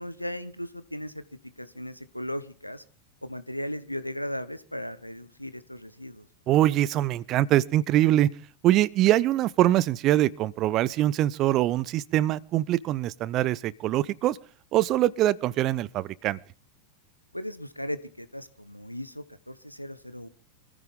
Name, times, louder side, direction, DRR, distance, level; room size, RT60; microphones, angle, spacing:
voice 1, 0.0-2.8 3.2-6.3 17.3-20.3, equal, 90° left, 15 dB, 1.1 m, -37 dB
voice 2, 6.5-8.3 8.6-14.4 14.7-16.4, right 14 dB, 35° right, 23 dB, 0.7 m, -23 dB
25.0 x 15.5 x 3.7 m, 0.41 s
figure-of-eight pair, 90°, 0 cm